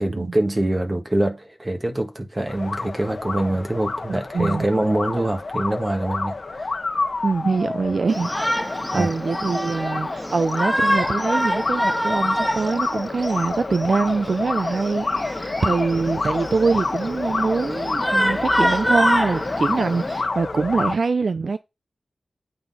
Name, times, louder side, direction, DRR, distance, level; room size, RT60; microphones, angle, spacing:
voice 1, 0.0-6.8 8.9-9.1, right 1 dB, 20° right, 1.6 m, -24 dB
sound 1, 2.5-21.0, left 3 dB, 45° left, 1.0 m, -28 dB
voice 2, 4.3-4.7 7.2-21.6, right 4 dB, 55° right, 0.5 m, -24 dB
Shout, 8.1-20.2, equal, ahead, 0.4 m, -26 dB
8.7 x 4.2 x 5.5 m
wide cardioid pair, 120°, 0 cm